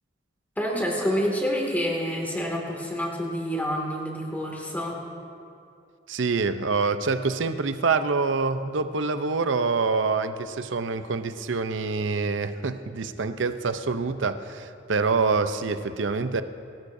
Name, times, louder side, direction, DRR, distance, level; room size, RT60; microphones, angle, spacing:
voice 1, 0.6-5.0, equal, 10° left, -1 dB, 2.2 m, -28 dB
voice 2, 6.1-16.4, right 4 dB, 75° right, 10 dB, 0.6 m, -26 dB
26.0 x 13.5 x 2.7 m, 2.5 s
head